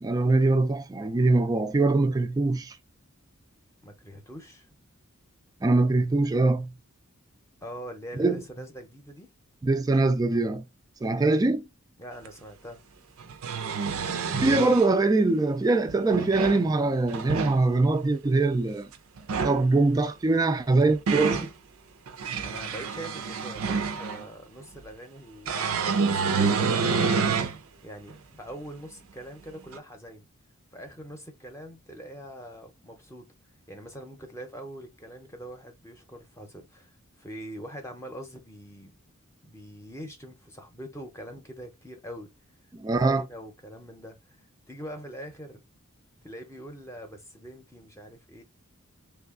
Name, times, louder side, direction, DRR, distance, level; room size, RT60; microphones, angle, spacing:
voice 1, 0.0-2.8 5.6-6.7 8.2-8.4 9.6-10.6 11.0-11.6 14.3-18.9 19.4-21.5 42.7-43.2, right 3 dB, 20° right, 0.3 m, -23 dB
voice 2, 3.8-4.7 7.6-9.3 11.0-11.2 12.0-12.8 22.1-27.3 27.8-30.3 30.7-33.3 33.7-38.9 39.4-42.3 42.9-45.6 46.2-48.4, equal, 15° left, 0.7 m, -43 dB
sound 1, 12.3-12.4 13.2-14.9 15.9-16.6 17.1-17.6 19.2-19.6 20.6-21.5 22.1-24.3 25.5-27.6 28.1-28.2 29.7-29.8, right 5 dB, 85° right, 0.5 m, -28 dB
3.2 x 2.3 x 3.6 m
head